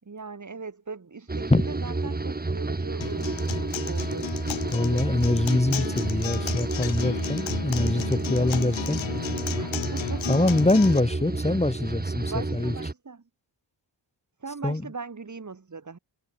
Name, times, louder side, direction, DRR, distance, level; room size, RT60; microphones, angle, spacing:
voice 1, 0.0-4.3 7.9-9.1 9.5-10.3 12.2-13.2 14.4-16.0, right 4 dB, 40° right, 6.0 m, -40 dB
sound 1, 1.3-12.9, right 3 dB, 20° right, 2.4 m, -30 dB
Acoustic guitar, 3.0-11.0, left 10 dB, 90° left, 1.7 m, -34 dB
voice 2, 4.7-9.0 10.3-12.7 14.6-14.8, left 2 dB, 15° left, 2.6 m, -24 dB
wide cardioid pair, 100°, 44 cm